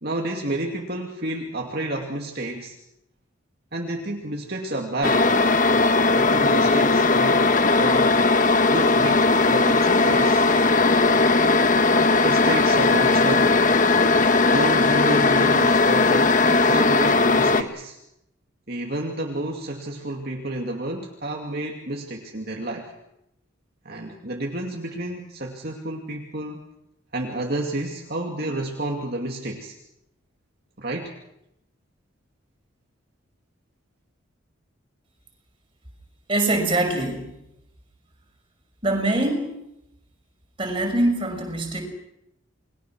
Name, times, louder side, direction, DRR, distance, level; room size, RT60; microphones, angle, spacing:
voice 1, 0.0-2.8 3.7-5.3 6.1-7.4 7.8-8.2 8.7-10.5 12.2-13.6 14.5-18.0 18.7-22.9 23.8-26.6 27.1-29.7 30.8-31.1, right 1 dB, 50° right, 1 dB, 2.6 m, -30 dB
sound 1, 5.0-17.6, left 3 dB, 40° left, 1.2 m, -18 dB
voice 2, 36.3-37.3 38.8-39.5 40.6-41.8, right 2 dB, 25° right, 3 dB, 5.9 m, -23 dB
29.0 x 22.0 x 6.3 m, 0.83 s
head